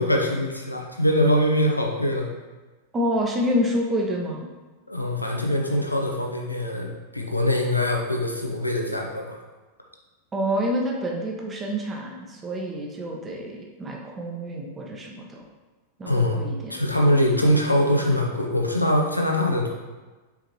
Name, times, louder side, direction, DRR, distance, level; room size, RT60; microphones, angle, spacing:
voice 1, 0.0-2.3 4.9-9.4 16.1-16.4 16.7-19.7, left 1 dB, 85° left, 1 dB, 0.8 m, -23 dB
voice 2, 2.9-4.5 10.3-15.4 16.0-16.8, equal, 20° right, -1 dB, 1.0 m, -28 dB
7.0 x 5.0 x 3.1 m, 1.2 s
figure-of-eight pair, 90°, 0 cm